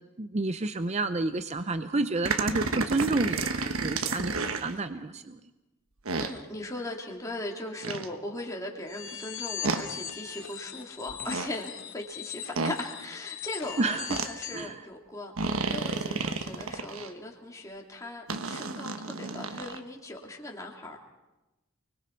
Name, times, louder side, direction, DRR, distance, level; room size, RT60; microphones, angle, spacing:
voice 1, 0.2-5.4 13.8-14.1 14.5-14.8, right 3 dB, 30° right, 10 dB, 0.6 m, -30 dB
sound 1, 2.2-4.7 6.1-6.3 7.8-8.1 9.6-9.8 11.1-11.5 12.6-12.8 14.1-14.3 15.4-17.1 18.3-19.8, right 3 dB, 90° right, 1.2 m, -31 dB
voice 2, 6.2-21.0, left 1 dB, 15° left, -1 dB, 2.6 m, -39 dB
sound 2, 8.9-14.7, left 9 dB, 75° left, 2.5 m, -40 dB
29.5 x 21.0 x 4.5 m, 1.0 s
head